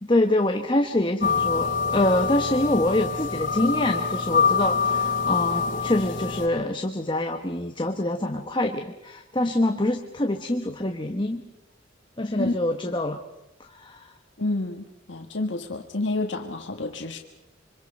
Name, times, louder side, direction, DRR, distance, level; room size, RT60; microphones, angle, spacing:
voice 1, 0.0-11.4 12.2-13.2 13.6-14.1, left 1 dB, 25° left, 4 dB, 1.2 m, -25 dB
sound 1, 1.2-6.5, left 5 dB, 45° left, 4.9 m, -25 dB
voice 2, 14.4-17.2, left 2 dB, 70° left, 3 dB, 1.6 m, -29 dB
26.5 x 25.0 x 5.4 m, 0.90 s
head